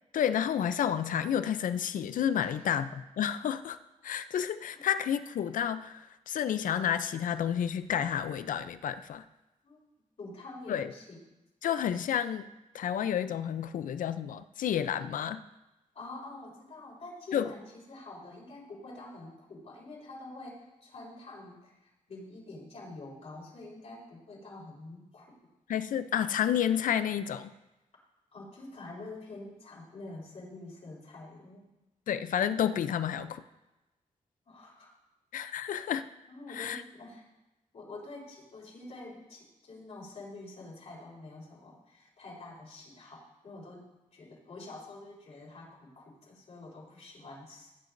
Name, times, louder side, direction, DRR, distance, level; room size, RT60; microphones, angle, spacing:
voice 1, 0.1-3.8 4.0-9.2 10.7-10.9 11.6-12.5 12.7-15.4 17.3-17.5 25.7-27.5 32.1-33.4 35.3-36.1 36.6-36.8, left 9 dB, 90° left, 12 dB, 0.5 m, -30 dB
voice 2, 2.4-2.8 4.7-4.8 9.6-9.8 10.2-11.2 15.9-25.3 28.3-31.6 34.5-34.9 36.3-37.3 37.7-47.7, left 2 dB, 55° left, -5 dB, 4.1 m, -47 dB
16.5 x 9.4 x 2.6 m, 1.0 s
wide cardioid pair, 155°, 13 cm